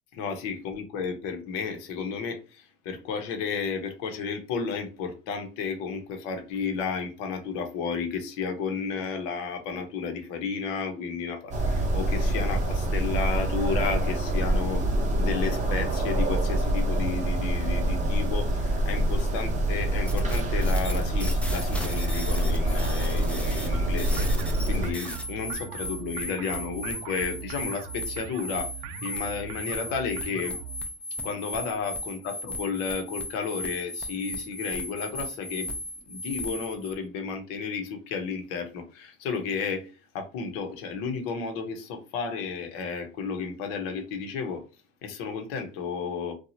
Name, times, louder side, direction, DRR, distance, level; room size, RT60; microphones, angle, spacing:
voice 1, 0.1-14.8 15.2-28.7 29.0-30.6 31.2-35.7 36.1-39.9 40.1-44.6 45.0-46.3, left 5 dB, 70° left, 0.9 m, -32 dB
sound 1, 11.5-24.9, right 1 dB, 25° right, 0.8 m, -26 dB
sound 2, 20.1-36.9, left 1 dB, 5° left, 0.6 m, -36 dB
sound 3, 23.7-30.8, right 8 dB, 65° right, 0.5 m, -41 dB
2.8 x 2.3 x 2.7 m
supercardioid pair, 105°, 31 cm